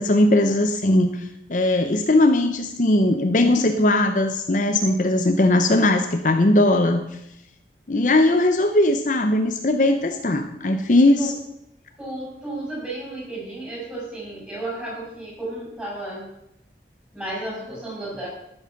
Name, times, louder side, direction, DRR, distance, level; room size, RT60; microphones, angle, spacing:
voice 1, 0.0-7.2 7.9-11.3, left 1 dB, 45° left, 6 dB, 0.7 m, -19 dB
voice 2, 12.0-16.3 17.1-18.3, right 2 dB, 10° right, -5 dB, 6.0 m, -33 dB
13.0 x 7.8 x 5.8 m, 0.82 s
head